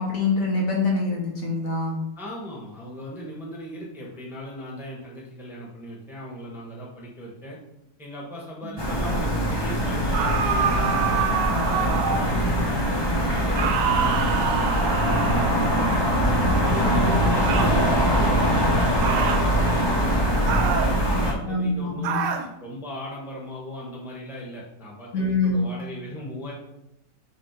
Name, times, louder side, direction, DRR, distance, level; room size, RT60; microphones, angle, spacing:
voice 1, 0.0-2.0 8.6-8.7 12.3-12.8 16.8-17.2 21.5-22.2 25.1-25.6, left 3 dB, 50° left, -1 dB, 1.5 m, -25 dB
voice 2, 2.2-7.6 8.0-16.1 16.7-22.2 22.6-26.5, equal, ahead, -4 dB, 1.1 m, -38 dB
sound 1, 8.8-21.3, equal, 35° left, 0.4 m, -22 dB
sound 2, 10.1-12.4 13.5-15.8 17.4-17.8 19.0-19.5 20.5-21.0 22.0-22.5, right 7 dB, 80° right, 1.3 m, -26 dB
6.6 x 3.3 x 4.8 m, 0.83 s
omnidirectional pair, 1.9 m